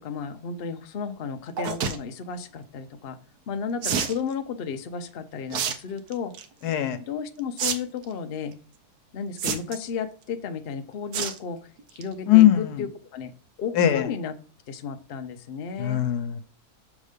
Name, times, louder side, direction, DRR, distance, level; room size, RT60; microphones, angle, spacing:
voice 1, 0.0-3.2 3.5-6.3 7.1-8.5 9.1-11.6 11.9-13.3 13.6-14.4 14.7-16.0, left 6 dB, 55° left, 7 dB, 0.7 m, -33 dB
sound 1, 1.6-2.0 3.8-4.2 5.5-5.8 6.1-6.5 7.6-7.7 8.0-8.1 9.4-9.9 11.1-11.4 11.8-12.0 12.4-12.5 12.7-12.8, right 7 dB, 80° right, 1.4 m, -27 dB
voice 2, 6.6-7.0 12.3-12.8 13.8-14.1 15.8-16.4, left 12 dB, 80° left, 10 dB, 1.3 m, -20 dB
6.5 x 3.6 x 5.0 m, 0.41 s
omnidirectional pair, 1.7 m